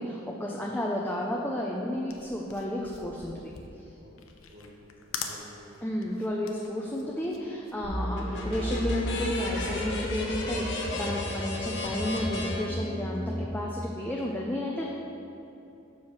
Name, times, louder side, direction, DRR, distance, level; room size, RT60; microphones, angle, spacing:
voice 1, 0.0-3.5 5.8-15.0, left 1 dB, 10° left, -2 dB, 0.5 m, -32 dB
sound 1, 1.9-8.6, left 6 dB, 85° left, 0.6 m, -43 dB
voice 2, 4.5-5.8 11.2-11.4, equal, 60° right, -3 dB, 0.8 m, -52 dB
sound 2, 7.8-13.4, left 1 dB, 60° left, 1.1 m, -32 dB
5.5 x 4.8 x 6.3 m, 2.8 s
head